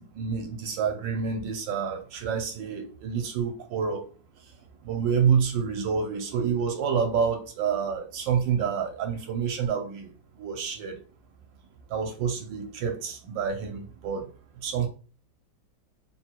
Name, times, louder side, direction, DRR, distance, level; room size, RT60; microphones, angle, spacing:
voice 1, 0.0-4.0 4.8-11.0 11.9-14.3 14.6-14.9, right 6 dB, 75° right, 1.3 m, -28 dB
3.6 x 2.2 x 4.3 m
omnidirectional pair, 2.1 m